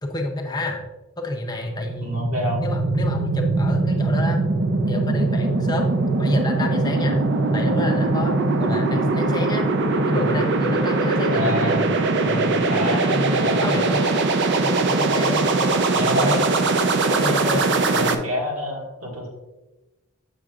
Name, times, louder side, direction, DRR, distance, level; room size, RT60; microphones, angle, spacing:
voice 1, 0.0-0.8 1.2-2.3 2.6-4.4 4.9-5.9 6.2-7.2 7.5-9.7 10.1-11.7 12.2-14.1 14.6-15.7 16.1-16.4 17.1-17.7, left 2 dB, 20° left, 2 dB, 0.6 m, -28 dB
sound 1, 1.6-18.1, right 3 dB, 55° right, 0.5 m, -21 dB
voice 2, 2.0-2.6 11.3-11.9 12.7-13.6 15.9-16.4 17.9-19.3, left 1 dB, 80° right, -1 dB, 1.7 m, -27 dB
7.3 x 6.4 x 2.4 m, 1.1 s
head